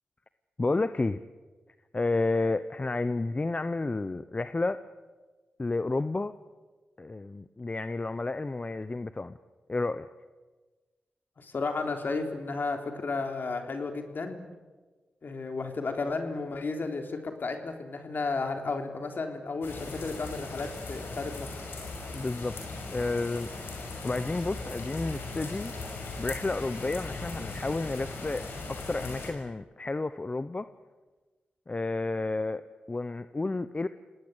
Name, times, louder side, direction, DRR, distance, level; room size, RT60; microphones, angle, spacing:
voice 1, 0.6-1.2 1.9-4.8 5.6-6.3 7.0-9.4 9.7-10.1 22.1-22.5 22.9-23.5 24.0-25.7 26.2-30.7 31.7-33.9, left 2 dB, 35° left, 13 dB, 0.9 m, -31 dB
voice 2, 11.4-14.4 15.2-21.6, left 3 dB, 60° left, 5 dB, 3.7 m, -33 dB
sound 1, 19.6-29.3, left 3 dB, 75° left, 5.9 m, -38 dB
27.0 x 19.0 x 8.3 m, 1.3 s
supercardioid pair, 40°, 4 cm